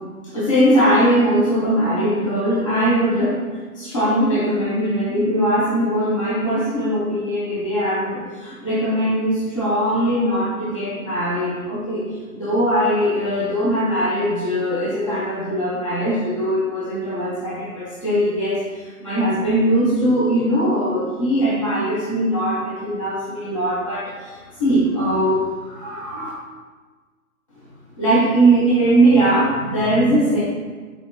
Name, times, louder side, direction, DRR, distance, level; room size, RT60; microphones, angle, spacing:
voice 1, 0.3-3.4 3.7-12.0 12.3-26.3 28.0-30.4, right 1 dB, 25° left, -9 dB, 0.5 m, -20 dB
4.0 x 4.0 x 2.5 m, 1.4 s
figure-of-eight pair, 130°, 43 cm